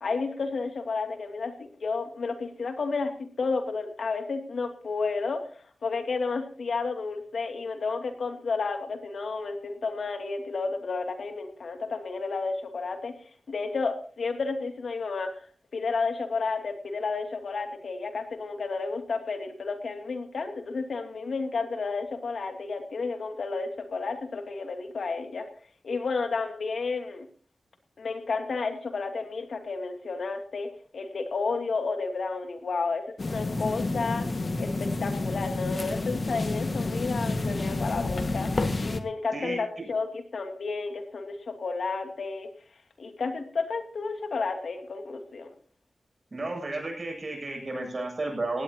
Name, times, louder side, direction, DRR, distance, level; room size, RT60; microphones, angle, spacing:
voice 1, 0.0-5.4 5.8-13.1 13.5-15.3 15.7-25.5 25.8-27.3 28.0-34.3 34.6-38.5 38.8-42.5 43.0-45.5, left 4 dB, 75° left, 5 dB, 2.5 m, -31 dB
sound 1, 33.2-39.0, left 2 dB, 45° left, 1.6 m, -29 dB
voice 2, 39.3-39.9 46.3-48.6, right 2 dB, 40° right, 1 dB, 7.8 m, -33 dB
18.0 x 17.5 x 2.9 m, 0.42 s
wide cardioid pair, 100°, 0 cm